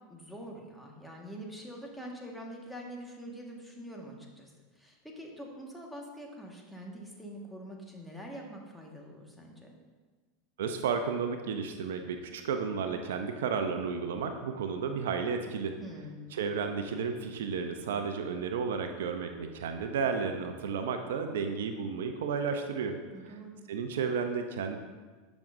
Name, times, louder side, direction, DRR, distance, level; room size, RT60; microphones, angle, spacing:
voice 1, 0.1-9.7 15.8-16.3 23.1-23.6, equal, 5° left, -1 dB, 1.5 m, -45 dB
voice 2, 10.6-15.8 16.3-23.0 23.7-24.8, right 5 dB, 75° right, 6 dB, 0.6 m, -32 dB
10.5 x 6.1 x 2.6 m, 1.4 s
hypercardioid pair, 95°, 0 cm